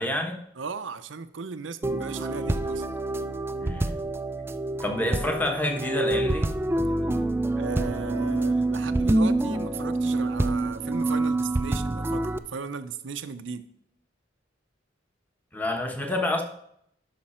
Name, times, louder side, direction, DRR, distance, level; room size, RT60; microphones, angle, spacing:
voice 1, 0.0-0.4 3.6-3.9 4.8-6.5 15.5-16.4, left 1 dB, 10° left, 3 dB, 1.2 m, -28 dB
voice 2, 0.6-3.0 6.8-13.6, right 5 dB, 80° right, 11 dB, 0.6 m, -37 dB
sound 1, 1.8-12.4, right 2 dB, 15° right, 0.4 m, -26 dB
11.5 x 5.8 x 4.3 m, 0.70 s
head